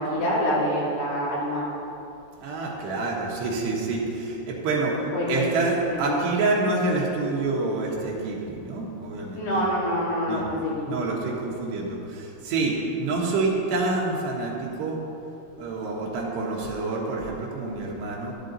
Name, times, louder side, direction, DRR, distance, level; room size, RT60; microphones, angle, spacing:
voice 1, 0.1-1.6 5.1-5.4 5.9-6.2 9.4-11.1, equal, 75° left, -7 dB, 5.2 m, -26 dB
voice 2, 2.4-5.0 5.3-9.4 10.3-10.4 10.9-15.0 15.6-18.3, right 3 dB, 70° right, -2 dB, 3.3 m, -27 dB
12.5 x 11.5 x 4.0 m, 2.8 s
omnidirectional pair, 5.4 m